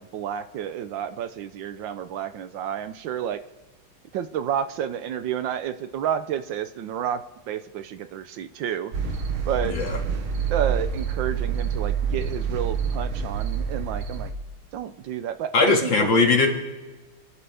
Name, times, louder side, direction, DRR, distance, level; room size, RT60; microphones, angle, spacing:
voice 1, 0.0-3.4 4.1-7.2 7.5-8.9 9.5-9.8 10.5-14.3 14.7-16.2, right 9 dB, 70° right, 10 dB, 1.3 m, -30 dB
sound 1, 8.9-14.3, right 6 dB, 90° right, 2.1 m, -27 dB
voice 2, 9.6-10.0 15.5-16.5, left 4 dB, 65° left, 1 dB, 2.7 m, -20 dB
28.5 x 11.5 x 3.4 m, 1.2 s
omnidirectional pair, 2.2 m